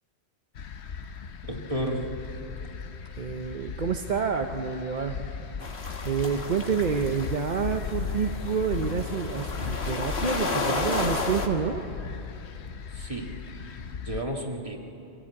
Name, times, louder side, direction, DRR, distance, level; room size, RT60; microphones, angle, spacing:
sound 1, 0.5-14.2, left 6 dB, 90° left, 1.1 m, -37 dB
voice 1, 1.4-2.1 6.3-6.4 12.9-13.7 14.0-14.8, right 1 dB, 30° right, 1 dB, 2.0 m, -33 dB
voice 2, 2.8-5.2 6.0-11.8, right 6 dB, 50° right, 4 dB, 0.9 m, -28 dB
sound 2, 5.6-11.5, left 3 dB, 75° left, 1.7 m, -33 dB
24.5 x 16.5 x 8.5 m, 2.8 s
omnidirectional pair, 1.1 m